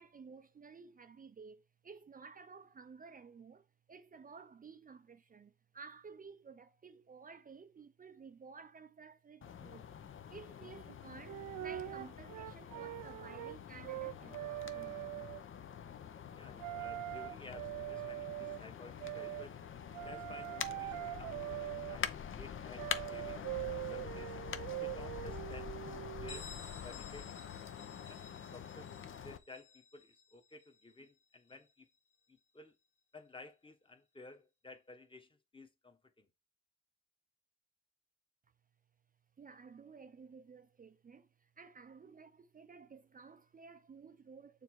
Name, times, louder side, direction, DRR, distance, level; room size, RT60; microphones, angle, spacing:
voice 1, 0.0-9.9 10.3-15.2 39.4-44.6, right 5 dB, 30° right, 0.5 m, -54 dB
sound 1, 9.4-29.4, left 8 dB, 45° left, 0.7 m, -46 dB
sound 2, 10.9-11.0 11.3-13.6 13.8-15.4 16.6-18.6 19.0-19.5 19.9-22.0 22.8-26.4, right 16 dB, 85° right, 0.5 m, -42 dB
voice 2, 16.4-19.6 20.0-24.4 24.8-26.5 26.8-27.3 28.0-28.2 28.5-28.9 29.2-31.9 32.3-32.8 33.1-36.3, left 2 dB, 15° left, 1.2 m, -54 dB
Bell, 26.3-31.8, left 5 dB, 85° left, 2.6 m, -55 dB
6.8 x 3.3 x 4.7 m
cardioid pair, 90°, 30 cm